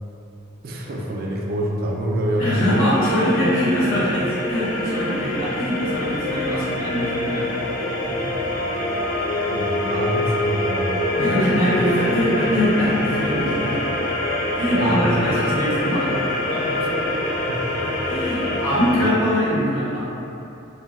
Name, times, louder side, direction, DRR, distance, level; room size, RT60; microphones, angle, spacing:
voice 1, 0.6-2.6 8.1-8.4 9.5-11.0 14.7-15.1 17.5-18.1, equal, 50° right, -1 dB, 0.3 m, -26 dB
voice 2, 2.4-7.5 11.2-13.8 14.5-16.1 16.5-17.0 18.0-20.0, equal, 80° left, -10 dB, 1.0 m, -22 dB
sound 1, 2.4-19.1, left 1 dB, 40° left, 0.4 m, -25 dB
2.2 x 2.1 x 3.5 m, 2.9 s
head